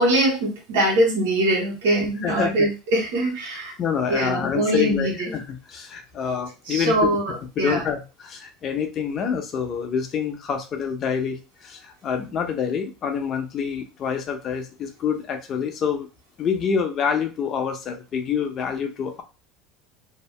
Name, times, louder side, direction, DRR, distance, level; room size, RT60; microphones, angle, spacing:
voice 1, 0.0-3.7 4.1-5.4 6.7-7.8, right 1 dB, 85° right, -1 dB, 1.3 m, -22 dB
voice 2, 2.2-2.7 3.8-7.1 7.6-16.1 16.4-19.2, left 7 dB, 40° left, 5 dB, 0.7 m, -27 dB
2.8 x 2.0 x 3.2 m, 0.30 s
supercardioid pair, 100°, 0 cm